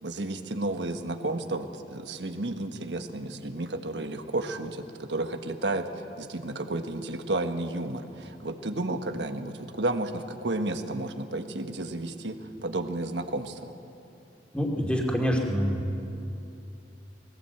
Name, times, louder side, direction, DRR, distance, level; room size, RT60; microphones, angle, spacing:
voice 1, 0.0-13.7, right 2 dB, 90° right, 7 dB, 1.3 m, -32 dB
voice 2, 14.5-16.1, equal, 5° left, 0 dB, 2.5 m, -26 dB
20.5 x 17.5 x 7.9 m, 2.8 s
head